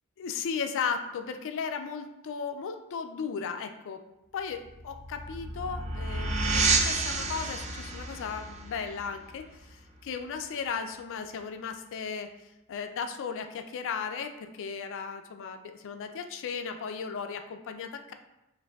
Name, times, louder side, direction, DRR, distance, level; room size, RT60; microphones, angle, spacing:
voice 1, 0.2-4.0 4.3-12.3 12.7-18.1, left 6 dB, 60° left, 7 dB, 0.4 m, -36 dB
sound 1, 4.6-10.0, right 3 dB, 30° right, 0.4 m, -30 dB
6.7 x 2.6 x 2.3 m, 0.95 s
head